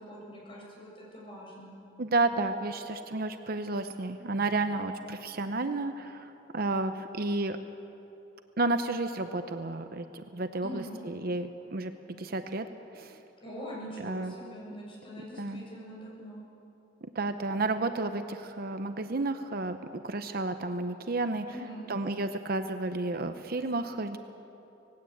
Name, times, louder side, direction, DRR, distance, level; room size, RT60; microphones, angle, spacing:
voice 1, 0.0-1.7 10.6-11.0 13.4-16.4 21.5-21.9, equal, 30° left, -4 dB, 6.8 m, -43 dB
voice 2, 2.0-7.6 8.6-11.9 12.2-12.7 12.9-13.2 14.0-14.3 15.4-15.6 17.0-19.8 20.0-21.5 21.9-24.2, right 2 dB, 50° right, 8 dB, 0.8 m, -31 dB
19.0 x 17.0 x 8.6 m, 2.9 s
head